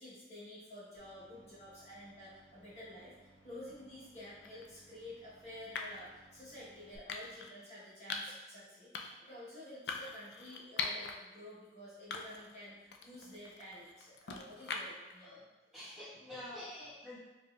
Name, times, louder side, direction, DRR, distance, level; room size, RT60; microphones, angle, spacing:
voice 1, 0.0-15.4 15.7-15.9, left 1 dB, 35° left, -9 dB, 1.0 m, -51 dB
sound 1, 1.0-7.0, right 1 dB, 20° right, 1.4 m, -65 dB
sound 2, 4.4-4.7 5.7-6.1 7.1-7.5 8.1-8.4 8.9-9.3 9.9-11.1 11.6-11.7 12.1-12.6 12.9-15.1, left 4 dB, 65° left, 0.4 m, -42 dB
voice 2, 15.7-17.2, left 1 dB, 5° right, -12 dB, 1.2 m, -47 dB
4.7 x 3.0 x 2.3 m, 1.1 s
head